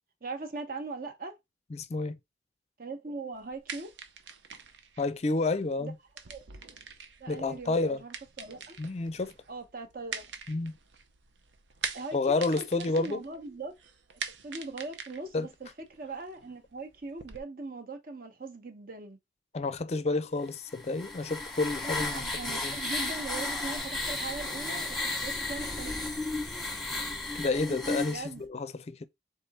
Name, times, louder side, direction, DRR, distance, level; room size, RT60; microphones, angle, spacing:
voice 1, 0.2-1.3 2.8-3.9 5.8-5.9 6.3-6.5 7.2-8.8 9.5-10.3 11.9-13.8 14.2-19.2 21.8-26.0 28.1-28.5, right 3 dB, 50° right, 0.9 m, -40 dB
voice 2, 1.7-2.1 5.0-5.9 7.3-8.0 8.8-9.3 10.5-10.7 12.1-13.2 15.3-15.5 19.5-22.8 27.4-29.1, left 3 dB, 35° left, 0.4 m, -30 dB
sound 1, 3.3-17.4, right 6 dB, 90° right, 0.7 m, -44 dB
sound 2, 20.7-28.2, left 2 dB, ahead, 1.1 m, -34 dB
3.8 x 3.4 x 4.0 m
head